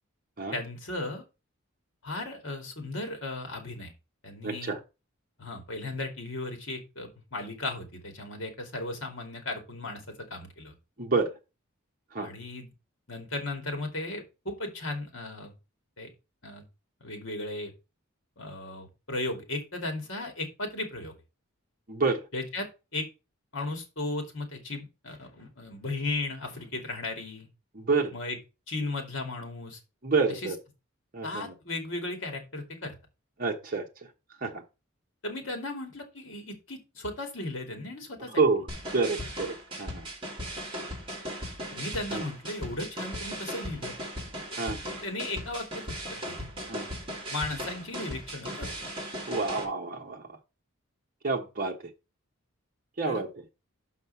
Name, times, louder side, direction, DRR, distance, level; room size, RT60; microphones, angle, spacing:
voice 1, 0.5-1.2 2.0-3.9 4.2-4.7 5.4-10.7 12.2-12.7 13.1-15.5 16.0-16.1 16.4-16.6 17.0-17.7 18.4-21.2 22.3-22.7 22.9-23.1 23.5-27.5 28.1-28.4 28.7-29.8 30.3-30.5 31.2-32.9 35.2-38.4 41.7-43.9 44.9-46.4 47.3-48.7 53.1-53.2, left 2 dB, 60° left, 2.5 m, -36 dB
voice 2, 4.4-4.8 11.0-11.3 12.1-12.3 21.9-22.2 27.7-28.1 30.0-30.6 31.1-31.5 33.4-33.9 34.4-34.6 38.4-38.7 38.9-40.1 42.1-42.2 44.6-44.8 46.7-46.8 49.3-50.2 51.2-51.7 53.0-53.3, right 4 dB, 40° right, 1.1 m, -28 dB
sound 1, 38.7-49.6, equal, 25° right, 2.7 m, -37 dB
6.4 x 5.8 x 5.6 m
head